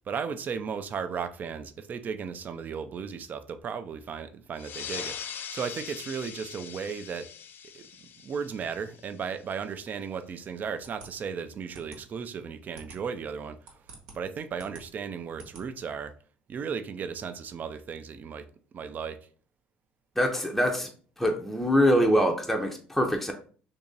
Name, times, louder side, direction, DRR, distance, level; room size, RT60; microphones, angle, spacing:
voice 1, 0.1-7.3 7.7-7.9 8.2-13.8 14.1-16.1 16.5-18.5 18.7-19.2, right 6 dB, 45° right, 0.4 m, -35 dB
sound 1, 4.6-9.6, left 8 dB, 50° left, 0.4 m, -41 dB
sound 2, 10.8-16.1, right 3 dB, 80° right, 1.0 m, -51 dB
voice 2, 20.2-20.9 21.2-23.3, equal, 5° left, 0.6 m, -24 dB
2.9 x 2.7 x 3.7 m
hypercardioid pair, 70°, 4 cm